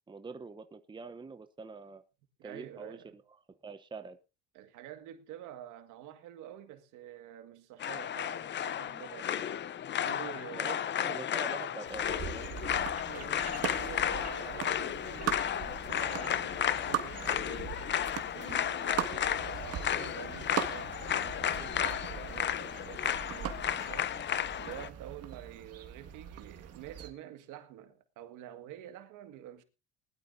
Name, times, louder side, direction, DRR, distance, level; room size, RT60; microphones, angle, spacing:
voice 1, 0.1-2.0 2.4-3.2 3.5-4.2 10.5-12.5, right 4 dB, 15° right, 0.8 m, -45 dB
voice 2, 2.4-3.1 4.5-9.6 10.0-11.1 13.0-17.8 18.3-24.1 24.6-29.6, right 12 dB, 75° right, 1.9 m, -48 dB
sound 1, 7.8-24.9, left 9 dB, 35° left, 0.6 m, -33 dB
sound 2, 11.9-27.1, right 9 dB, 50° right, 1.8 m, -40 dB
20.0 x 12.0 x 2.7 m
cardioid pair, 105°, 31 cm